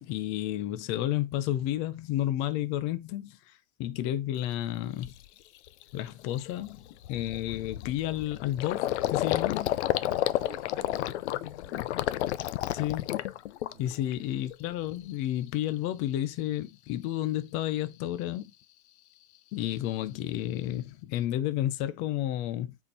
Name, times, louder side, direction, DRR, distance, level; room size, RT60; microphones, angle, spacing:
voice 1, 0.0-5.1 5.9-9.8 12.7-13.2 13.8-18.5 19.5-22.8, left 13 dB, 15° left, 0.4 m, -31 dB
Gurgling, 4.4-4.5 5.0-5.3 5.7-5.8 6.1-14.1 14.5-15.1, left 14 dB, 50° left, 0.7 m, -31 dB
voice 2, 10.1-11.8 13.7-14.1, right 8 dB, 40° right, 3.6 m, -53 dB
8.5 x 4.4 x 4.2 m
hypercardioid pair, 140°, 43 cm